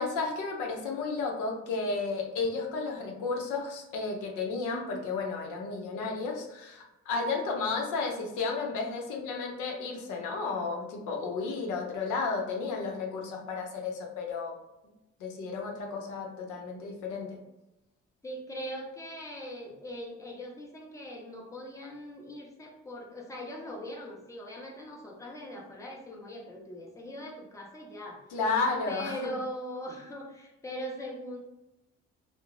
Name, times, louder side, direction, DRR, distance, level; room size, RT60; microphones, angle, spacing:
voice 1, 0.0-14.5 15.2-17.4 28.3-29.2, left 4 dB, 85° left, 1 dB, 0.6 m, -32 dB
voice 2, 18.2-28.2 28.9-31.4, equal, 10° left, -1 dB, 0.6 m, -41 dB
2.4 x 2.1 x 3.0 m, 0.95 s
cardioid pair, 90°, 30 cm